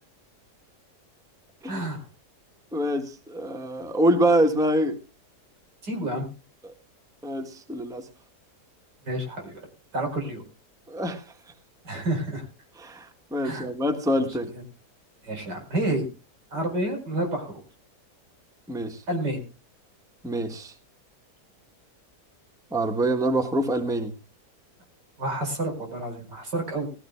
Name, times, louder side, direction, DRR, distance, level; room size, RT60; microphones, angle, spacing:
voice 1, 1.7-2.0 5.8-6.3 9.0-9.7 9.9-10.4 11.9-12.5 13.4-13.7 14.5-14.6 15.2-16.1 16.5-17.6 19.1-19.4 25.2-26.9, right 1 dB, 90° right, 3 dB, 5.2 m, -29 dB
voice 2, 2.7-5.0 6.6-6.7 7.2-8.1 10.9-11.2 12.8-14.5 18.7-19.0 20.2-20.7 22.7-24.1, right 1 dB, ahead, 6 dB, 1.3 m, -25 dB
20.5 x 15.0 x 2.2 m, 0.31 s
omnidirectional pair, 1.8 m